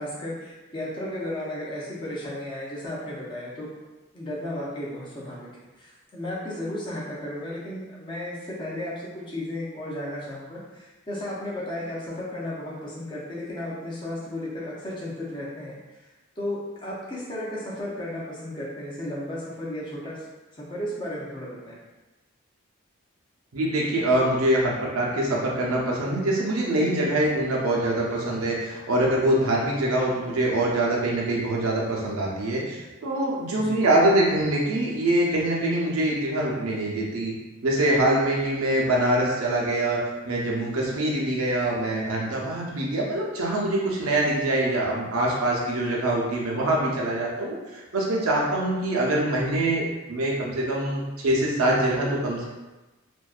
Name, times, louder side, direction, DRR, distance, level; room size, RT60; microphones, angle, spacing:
voice 1, 0.0-3.7 4.1-5.4 5.8-15.8 16.4-20.2 20.5-21.8 33.6-33.8, left 1 dB, 25° left, -6 dB, 0.5 m, -34 dB
voice 2, 23.5-37.3 37.6-40.0 40.2-52.5, right 1 dB, 90° right, -3 dB, 0.6 m, -24 dB
2.5 x 2.2 x 2.4 m, 1.1 s
head